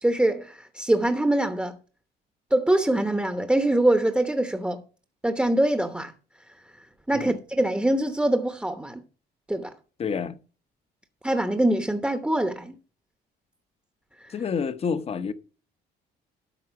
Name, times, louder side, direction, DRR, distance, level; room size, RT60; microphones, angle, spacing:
voice 1, 0.0-1.8 2.5-4.8 5.2-6.1 7.1-9.0 9.5-9.7 11.2-12.8 14.2-14.3, right 1 dB, 5° right, 0.9 m, -24 dB
voice 2, 10.0-10.4 14.3-15.3, left 6 dB, 35° left, 0.9 m, -28 dB
12.5 x 4.7 x 5.9 m
cardioid pair, 110°, 17 cm